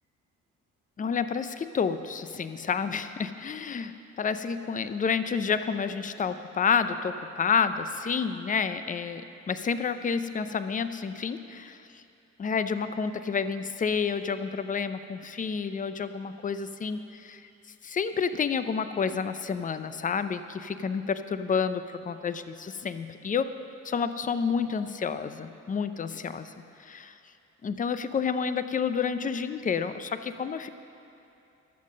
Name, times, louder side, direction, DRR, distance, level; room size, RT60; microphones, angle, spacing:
voice 1, 1.0-12.0 12.4-17.4 17.8-23.5 23.8-26.5 26.8-27.2 27.6-30.7, left 6 dB, 25° left, 11 dB, 0.5 m, -29 dB
12.5 x 7.4 x 6.5 m, 2.7 s
cardioid pair, 90°, 30 cm